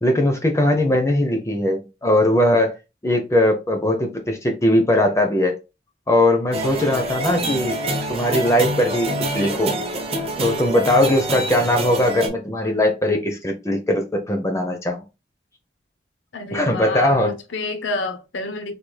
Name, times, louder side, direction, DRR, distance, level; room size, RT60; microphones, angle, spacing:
voice 1, 0.0-2.7 3.0-5.6 6.1-7.8 8.1-9.8 10.4-15.0 16.5-17.3, left 1 dB, 15° left, 0.5 m, -20 dB
sound 1, 6.5-12.3, right 1 dB, 30° right, 0.6 m, -26 dB
voice 2, 16.3-18.7, left 3 dB, 90° left, 0.7 m, -29 dB
3.4 x 2.3 x 3.1 m
head